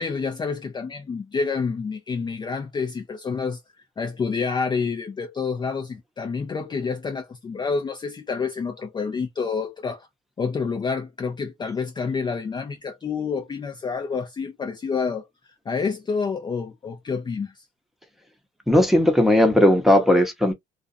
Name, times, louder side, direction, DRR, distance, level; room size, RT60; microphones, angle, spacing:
voice 1, 0.0-3.6 4.0-10.1 10.4-15.3 15.7-17.6, left 5 dB, 25° left, 0.5 m, -28 dB
voice 2, 18.7-20.5, left 1 dB, ahead, 0.8 m, -17 dB
2.4 x 2.3 x 2.5 m
cardioid pair, 110°, 17 cm